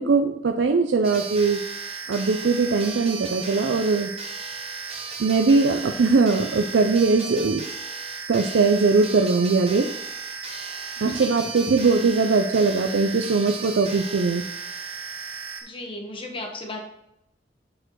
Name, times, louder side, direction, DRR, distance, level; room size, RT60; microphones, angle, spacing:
voice 1, 0.0-1.6 2.1-4.1 5.2-7.6 8.3-9.9 11.0-14.4, right 4 dB, 80° right, 4 dB, 0.5 m, -20 dB
sound 1, 1.0-15.6, right 5 dB, 35° right, 1.0 m, -35 dB
voice 2, 11.0-11.4 15.6-16.8, left 2 dB, 30° left, 2 dB, 1.2 m, -35 dB
6.4 x 4.4 x 4.5 m, 0.82 s
head